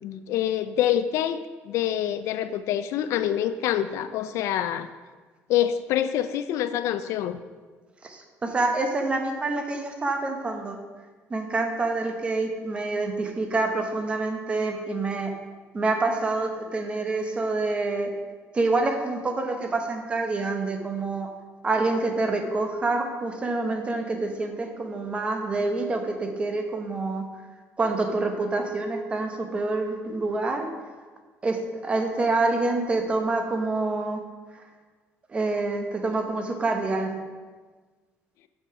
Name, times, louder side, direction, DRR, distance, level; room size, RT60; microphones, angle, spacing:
voice 1, 0.0-1.4 1.7-4.9 5.5-7.4, left 11 dB, 70° left, 12 dB, 0.3 m, -26 dB
voice 2, 8.0-10.8 11.3-15.3 15.7-18.1 18.5-21.3 21.6-27.2 27.8-30.7 31.4-34.2 34.5-34.6 35.3-37.2, right 3 dB, 20° right, 4 dB, 0.9 m, -27 dB
6.9 x 5.8 x 4.7 m, 1.4 s
cardioid pair, 145°, 5 cm